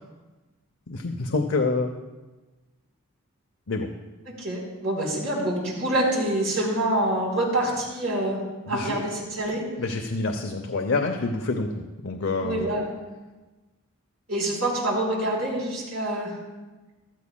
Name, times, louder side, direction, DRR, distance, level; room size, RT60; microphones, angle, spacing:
voice 1, 0.9-1.9 3.7-3.9 8.7-9.0 9.8-12.6, left 3 dB, 65° left, 3 dB, 0.7 m, -27 dB
voice 2, 4.3-8.4 8.7-9.6 12.4-12.8 14.3-16.3, right 1 dB, 80° right, -4 dB, 3.9 m, -26 dB
15.5 x 12.5 x 2.3 m, 1.2 s
head